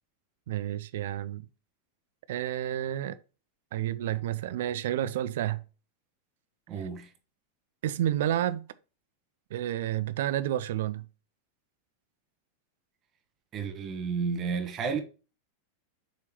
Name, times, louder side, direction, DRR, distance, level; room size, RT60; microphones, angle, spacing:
voice 1, 0.5-1.5 2.3-3.2 3.7-5.6 7.8-8.7 9.5-11.0, right 12 dB, 60° right, 0.5 m, -30 dB
voice 2, 6.7-7.1 13.5-15.0, right 5 dB, 35° right, 1.1 m, -31 dB
7.2 x 4.6 x 3.0 m
figure-of-eight pair, 90°, 0 cm